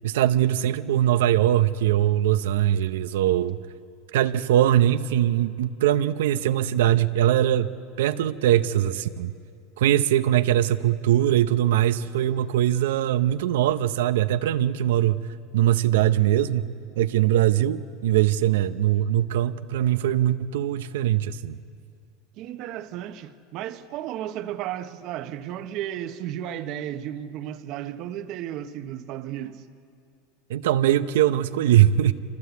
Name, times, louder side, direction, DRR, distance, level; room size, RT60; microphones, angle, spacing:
voice 1, 0.0-3.6 4.1-7.7 8.0-9.3 9.8-15.2 15.5-21.6 30.5-32.1, right 12 dB, 80° right, 0.7 m, -21 dB
voice 2, 22.4-29.6, right 11 dB, 55° right, 1.1 m, -34 dB
25.5 x 18.5 x 8.3 m
supercardioid pair, 110°, 0 cm